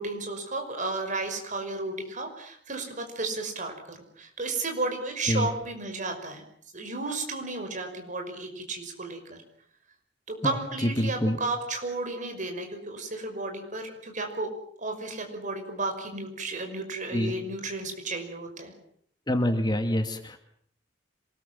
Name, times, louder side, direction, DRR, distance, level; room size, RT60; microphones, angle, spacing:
voice 1, 0.0-6.4 6.7-9.4 10.3-14.5 14.8-18.7, right 2 dB, 40° right, 4 dB, 5.7 m, -33 dB
voice 2, 10.8-11.4 17.1-17.4 19.3-20.4, equal, 25° left, 6 dB, 2.2 m, -26 dB
26.5 x 20.5 x 7.6 m, 0.65 s
head